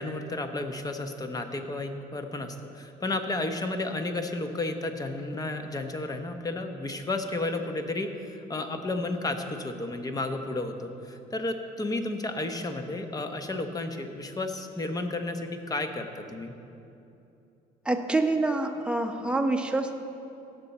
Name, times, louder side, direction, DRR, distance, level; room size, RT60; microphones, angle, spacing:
voice 1, 0.0-16.5, left 2 dB, 20° left, 6 dB, 0.9 m, -32 dB
voice 2, 17.8-19.9, right 2 dB, 5° right, 4 dB, 0.8 m, -26 dB
16.5 x 6.9 x 4.2 m, 2.8 s
cardioid pair, 110°, 17 cm